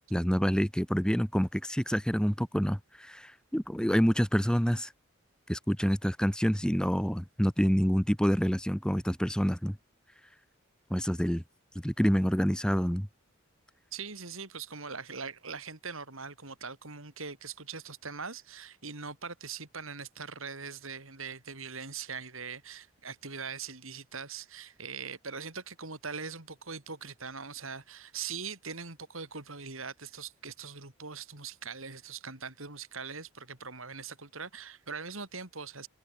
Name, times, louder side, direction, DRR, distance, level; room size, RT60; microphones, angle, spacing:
voice 1, 0.1-4.9 5.5-9.8 10.9-11.4 11.8-13.1, equal, 5° left, 2.1 m, -27 dB
voice 2, 13.9-35.9, right 5 dB, 75° right, 5.3 m, -41 dB
head